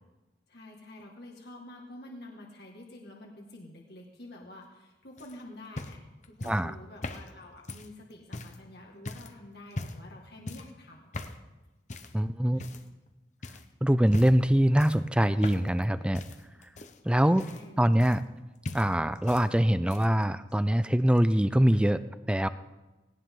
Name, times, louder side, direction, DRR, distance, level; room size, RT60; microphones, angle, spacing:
voice 1, 0.5-6.0 6.2-11.1 12.5-12.8 17.3-18.1, left 1 dB, 65° left, -1 dB, 2.0 m, -48 dB
sound 1, 5.2-8.6 9.1-9.3 9.7-10.1 10.5-10.8 11.1-11.4 11.9-12.2 12.6-13.1 13.4-13.7 14.1-14.5 14.8-15.8 16.1-18.4 18.6-19.5 19.7-20.2 21.2-21.3, left 2 dB, 40° left, 1.0 m, -40 dB
voice 2, 12.1-12.6 13.8-16.2 17.0-17.4 17.8-18.2 18.7-22.0 22.3-22.5, equal, 5° right, 13 dB, 0.5 m, -23 dB
18.5 x 18.0 x 3.8 m, 1.1 s
head